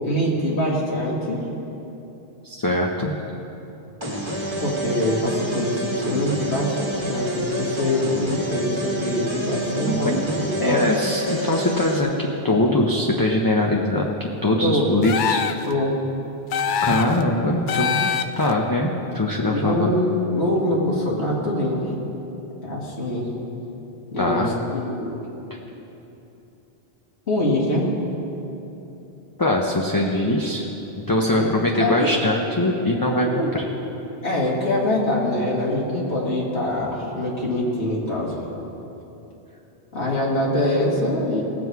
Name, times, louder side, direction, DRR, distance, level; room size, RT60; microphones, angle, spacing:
voice 1, 0.0-1.5 4.6-10.9 14.6-14.9 15.7-15.9 19.5-21.9 22.6-23.3 24.1-25.2 27.3-27.9 31.3-31.5 31.7-32.1 33.2-33.6 34.2-38.5 39.9-41.4, left 1 dB, 80° left, -4 dB, 2.3 m, -24 dB
voice 2, 2.4-3.1 9.9-10.2 10.6-15.4 16.8-18.1 18.4-19.9 24.2-24.5 25.5-25.6 29.4-30.7 31.1-33.6, left 1 dB, 25° left, -1 dB, 0.6 m, -22 dB
sound 1, 4.0-12.0, right 1 dB, 25° right, 1.4 m, -28 dB
sound 2, 15.0-15.7 16.5-17.2 17.7-18.5, left 8 dB, 60° left, 0.6 m, -24 dB
17.5 x 7.7 x 4.7 m, 3.0 s
omnidirectional pair, 1.1 m